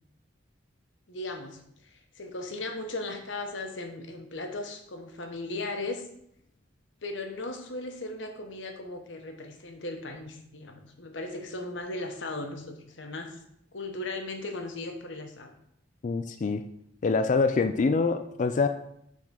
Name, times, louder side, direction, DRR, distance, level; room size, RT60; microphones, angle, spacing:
voice 1, 1.1-1.6 1.9-6.1 7.0-13.4 13.7-15.5, left 2 dB, 75° left, 5 dB, 1.0 m, -37 dB
voice 2, 16.0-16.6 17.0-18.7, left 4 dB, 40° left, 9 dB, 0.3 m, -25 dB
7.5 x 3.7 x 5.6 m, 0.74 s
head